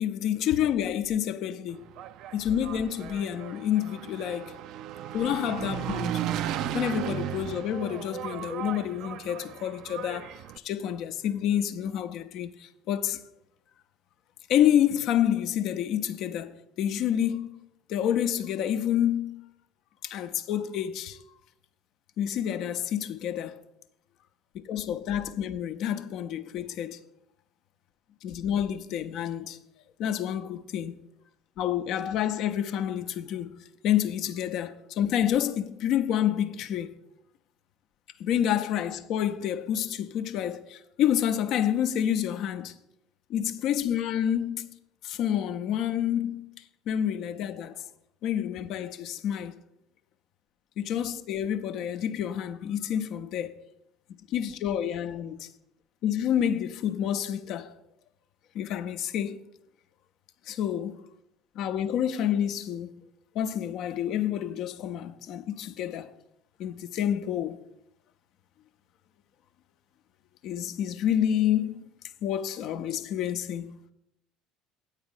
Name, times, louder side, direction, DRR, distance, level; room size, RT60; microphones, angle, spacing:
voice 1, 0.0-1.9 2.3-4.6 5.1-6.2 6.7-13.2 14.5-17.6 17.9-19.4 20.0-21.2 22.2-23.6 24.6-27.0 28.2-29.6 30.0-31.0 31.6-37.0 38.2-42.8 43.3-44.7 45.0-46.5 46.9-47.9 48.2-49.6 50.8-53.6 54.3-55.5 56.0-57.8 58.5-59.4 60.5-61.1 61.5-62.9 63.3-66.1 66.6-67.6 70.4-71.8 72.2-73.8, left 10 dB, 55° left, 0.6 m, -28 dB
Engine, 1.7-10.6, right 11 dB, 60° right, 0.4 m, -35 dB
8.6 x 4.8 x 7.2 m
hypercardioid pair, 65°, 0 cm